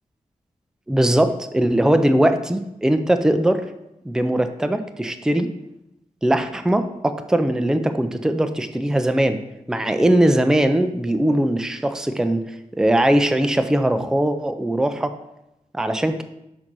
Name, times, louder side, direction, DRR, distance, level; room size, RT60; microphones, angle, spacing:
voice 1, 0.9-3.6 4.1-5.5 6.2-9.4 9.7-12.4 12.7-15.1 15.7-16.2, right 1 dB, 5° right, 8 dB, 0.4 m, -20 dB
6.1 x 3.9 x 6.0 m, 0.87 s
wide cardioid pair, 120°, 14 cm